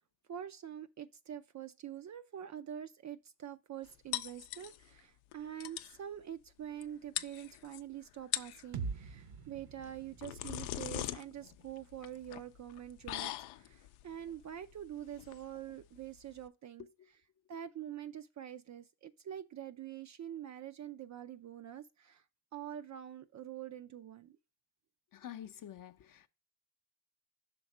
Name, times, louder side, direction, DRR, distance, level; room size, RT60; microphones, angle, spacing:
voice 1, 0.3-16.9 17.5-22.2 22.5-24.4, right 10 dB, 40° right, 0.4 m, -45 dB
sound 1, 4.1-5.0 5.3-5.4 5.6-6.0 6.8-6.9 7.2-7.8 8.2-8.7 9.8-16.5, left 14 dB, 85° left, 0.5 m, -41 dB
sound 2, 8.7-12.6, right 5 dB, 55° right, 0.8 m, -46 dB
voice 2, 25.1-26.3, left 10 dB, 45° left, 0.6 m, -48 dB
6.0 x 3.5 x 5.3 m
cardioid pair, 85°, 48 cm